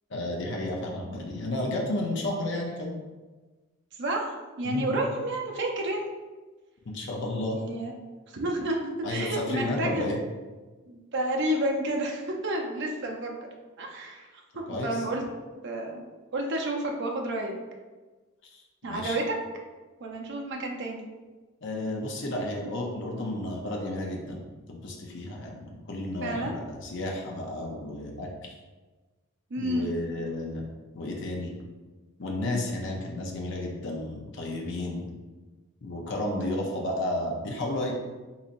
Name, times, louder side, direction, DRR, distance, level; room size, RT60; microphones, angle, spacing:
voice 1, 0.1-2.9 4.6-5.0 6.9-7.6 9.0-10.2 14.7-15.0 18.4-19.2 21.6-24.4 24.7-28.3 29.6-30.6 30.9-31.5 32.2-35.0 35.8-37.9, left 1 dB, 60° left, 0 dB, 0.6 m, -32 dB
voice 2, 4.0-6.1 7.6-7.9 8.3-8.8 9.1-10.1 10.9-13.3 13.8-14.3 14.5-15.3 15.6-16.0 16.3-17.5 18.8-19.2 20.0-21.1 26.2-26.6 29.5-29.9 36.4-36.7, right 1 dB, 55° right, 0 dB, 0.6 m, -30 dB
3.9 x 2.9 x 2.5 m, 1.3 s
head